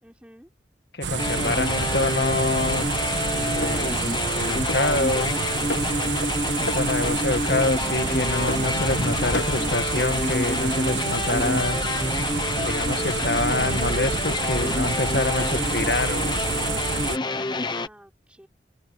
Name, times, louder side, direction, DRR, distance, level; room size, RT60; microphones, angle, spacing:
voice 1, 0.0-0.5 5.1-5.6 17.4-18.5, equal, 5° right, 4.8 m, -47 dB
voice 2, 0.9-2.9 3.5-5.3 6.6-11.8 12.6-16.4, left 2 dB, 60° left, 1.8 m, -26 dB
sound 1, 1.0-17.2, right 5 dB, 80° right, 1.5 m, -28 dB
sound 2, 1.2-17.9, left 2 dB, 25° left, 0.9 m, -27 dB
sound 3, 2.4-4.4 4.7-5.4 5.7-6.4 6.7-7.3 7.6-9.1 9.3-9.6, left 1 dB, 85° left, 4.3 m, -36 dB
head